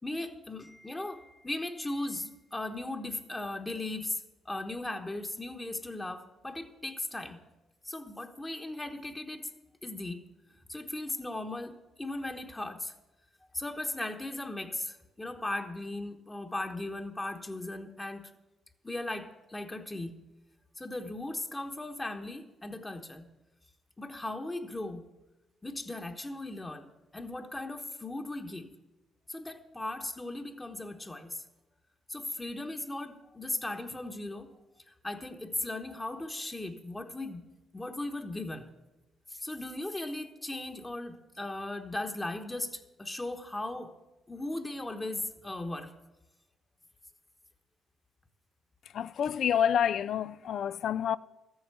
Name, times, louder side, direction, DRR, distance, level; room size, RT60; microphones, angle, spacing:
voice 1, 0.0-7.4 7.8-9.5 9.8-10.2 10.7-12.9 13.5-18.3 18.8-20.1 20.8-23.3 24.0-25.0 25.6-28.7 29.3-31.4 32.1-34.5 34.9-37.4 37.7-38.7 39.3-43.9 44.3-45.9, left 2 dB, 15° left, 1.1 m, -37 dB
voice 2, 48.9-51.2, left 9 dB, 65° left, 0.3 m, -28 dB
13.5 x 8.0 x 6.8 m
cardioid pair, 90°, 0 cm